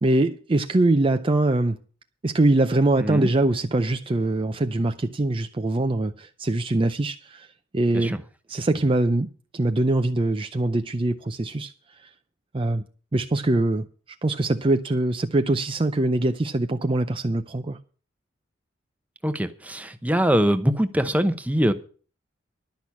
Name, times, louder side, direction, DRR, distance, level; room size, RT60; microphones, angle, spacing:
voice 1, 0.0-1.8 2.2-7.5 7.7-8.2 8.5-9.3 9.5-11.7 12.0-12.1 12.5-12.8 13.1-13.9 14.2-17.8, right 2 dB, 30° right, 0.5 m, -23 dB
voice 2, 3.0-3.3 7.9-8.2 19.2-21.7, equal, 10° right, 0.8 m, -23 dB
11.5 x 6.1 x 8.4 m
head